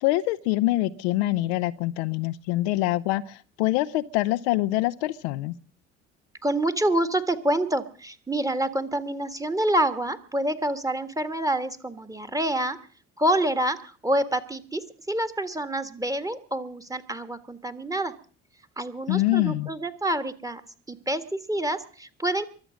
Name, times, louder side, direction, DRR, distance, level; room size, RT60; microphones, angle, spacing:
voice 1, 0.0-5.5 19.1-19.7, left 17 dB, 70° left, 0.7 m, -25 dB
voice 2, 6.4-12.8 13.2-18.1 18.8-20.6 20.9-22.5, right 1 dB, 10° right, 1.5 m, -27 dB
23.0 x 8.0 x 6.3 m
figure-of-eight pair, 55°, 34 cm